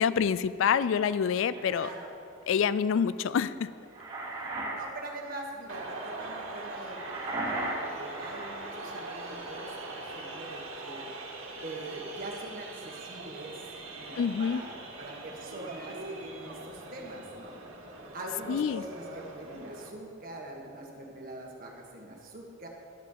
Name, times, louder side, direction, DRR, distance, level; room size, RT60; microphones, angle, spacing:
voice 1, 0.0-1.9 2.5-3.7 14.2-14.6 18.5-18.8, left 7 dB, 70° left, 16 dB, 0.3 m, -27 dB
sound 1, 0.9-1.9 3.6-4.8 5.1-5.4 6.9-8.7, right 2 dB, 25° right, 2.5 m, -36 dB
voice 2, 1.7-2.1 4.8-11.1 11.6-13.6 13.9-17.6 18.1-22.7, right 1 dB, 45° right, -1 dB, 1.7 m, -43 dB
sound 2, 5.7-19.9, right 2 dB, 80° right, 1.8 m, -42 dB
12.0 x 6.1 x 7.3 m, 2.4 s
head